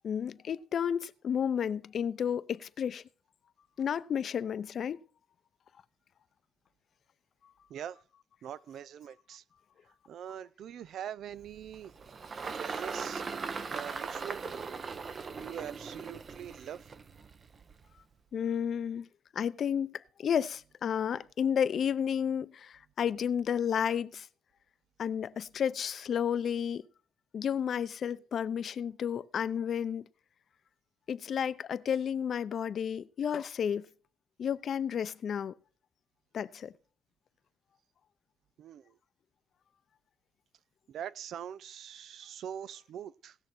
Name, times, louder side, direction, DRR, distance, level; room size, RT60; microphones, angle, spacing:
voice 1, 0.0-3.0 3.8-5.0 18.3-19.1 19.3-24.3 25.0-26.8 27.3-30.0 31.1-33.9 34.4-35.5 36.3-36.7, left 8 dB, 60° left, 0.6 m, -32 dB
voice 2, 8.4-9.4 10.1-11.9 12.5-14.5 15.4-16.8 38.6-39.0 40.9-43.4, right 9 dB, 70° right, 0.5 m, -43 dB
Engine, 11.4-18.0, right 5 dB, 45° right, 0.8 m, -40 dB
18.0 x 6.5 x 4.4 m
cardioid pair, 90°, 0 cm